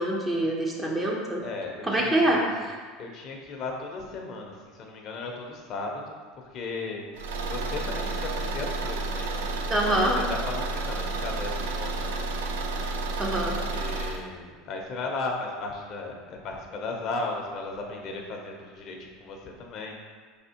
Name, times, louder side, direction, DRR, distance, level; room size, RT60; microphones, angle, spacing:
voice 1, 0.0-1.4 1.8-2.8 9.7-10.2 13.2-13.6, right 1 dB, 20° right, -1 dB, 0.8 m, -25 dB
voice 2, 1.4-2.7 3.0-7.0 7.4-9.6 9.9-12.3 13.7-20.0, left 3 dB, 50° left, 1 dB, 0.7 m, -36 dB
Car / Engine, 7.2-14.2, right 2 dB, 85° right, 0.4 m, -31 dB
4.8 x 3.5 x 2.8 m, 1.6 s
supercardioid pair, 105°, 0 cm